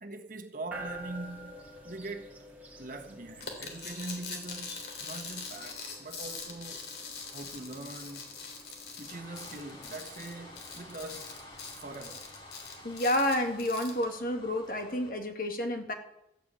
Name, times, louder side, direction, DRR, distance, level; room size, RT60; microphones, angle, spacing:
voice 1, 0.0-2.4 2.8-6.9 7.3-8.3 9.0-11.4 11.8-12.2, right 2 dB, 50° right, 1.5 m, -42 dB
sound 1, 0.7-13.7, right 1 dB, 10° right, 2.2 m, -50 dB
sound 2, 3.4-14.0, left 5 dB, 75° left, 3.6 m, -43 dB
sound 3, 7.1-15.1, left 1 dB, 30° left, 2.3 m, -52 dB
voice 2, 12.8-15.9, left 1 dB, 50° left, 1.9 m, -30 dB
14.0 x 8.6 x 8.7 m
head